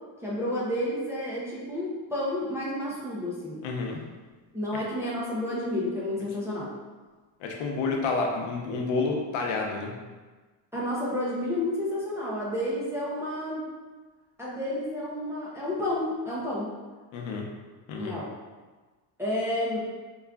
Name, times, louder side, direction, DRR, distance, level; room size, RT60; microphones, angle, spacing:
voice 1, 0.2-3.6 4.5-6.7 10.7-13.6 14.4-16.7 18.0-18.3 19.2-19.8, left 1 dB, 5° right, -7 dB, 0.4 m, -30 dB
voice 2, 3.6-4.0 4.7-4.8 7.4-9.9 17.1-17.5 17.9-18.2, left 3 dB, 80° left, 0 dB, 0.7 m, -29 dB
4.8 x 2.3 x 2.2 m, 1.3 s
cardioid pair, 150°, 46 cm